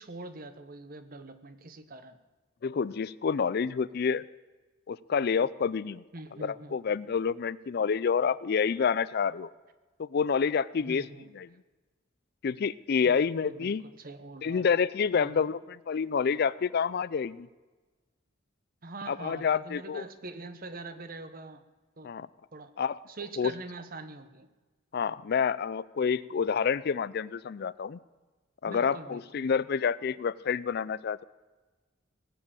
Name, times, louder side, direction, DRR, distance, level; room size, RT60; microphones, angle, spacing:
voice 1, 0.0-2.2 6.1-6.8 10.8-11.3 13.0-14.7 15.1-15.5 18.8-21.6 22.0-22.1 22.5-22.7 23.1-24.5 28.6-29.5, right 3 dB, 45° right, 10 dB, 1.1 m, -44 dB
voice 2, 2.6-4.2 4.9-6.0 6.4-9.5 10.0-11.0 11.3-11.5 12.4-13.8 14.4-17.5 19.1-20.0 22.0-22.3 22.8-23.0 23.4-23.5 24.9-28.0 28.6-31.2, left 6 dB, 55° left, 19 dB, 0.4 m, -28 dB
19.0 x 7.7 x 8.8 m, 1.2 s
head